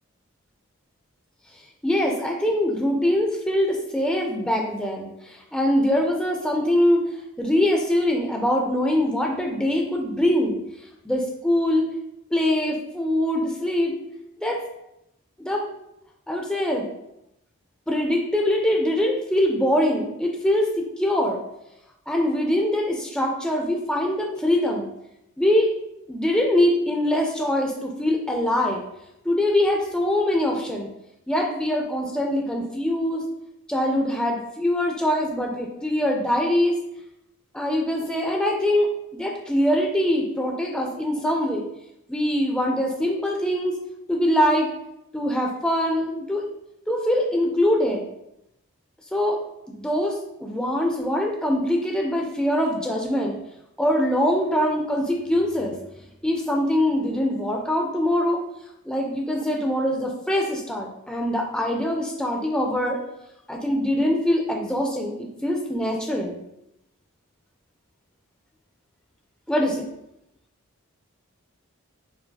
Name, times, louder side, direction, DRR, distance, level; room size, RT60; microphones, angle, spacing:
voice 1, 1.8-7.1 7.4-10.6 11.0-11.9 12.3-14.0 14.4-14.6 15.4-15.6 16.3-16.9 17.9-21.4 22.1-24.9 25.4-25.7 26.1-28.8 29.2-30.9 31.3-33.2 33.7-36.8 37.5-41.6 42.1-43.8 44.1-44.7 45.1-46.4 46.9-48.0 49.1-49.4 49.7-53.4 53.8-55.8 56.2-58.4 58.9-63.0 63.5-66.4 69.5-69.8, left 1 dB, 5° left, 0 dB, 0.4 m, -23 dB
5.6 x 2.6 x 2.3 m, 0.84 s
head